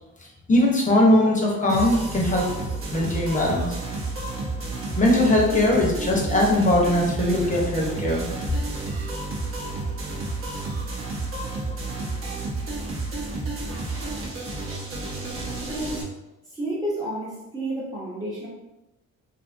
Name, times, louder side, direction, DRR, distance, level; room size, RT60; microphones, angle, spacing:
voice 1, 0.5-2.5 2.9-3.7 5.0-8.3, left 1 dB, 25° left, -2 dB, 0.8 m, -20 dB
sound 1, 1.7-16.0, right 3 dB, 45° right, 0.8 m, -31 dB
voice 2, 15.6-16.1 16.4-18.5, right 1 dB, 15° right, -8 dB, 0.8 m, -31 dB
2.6 x 2.5 x 2.5 m, 0.98 s
cardioid pair, 90°, 30 cm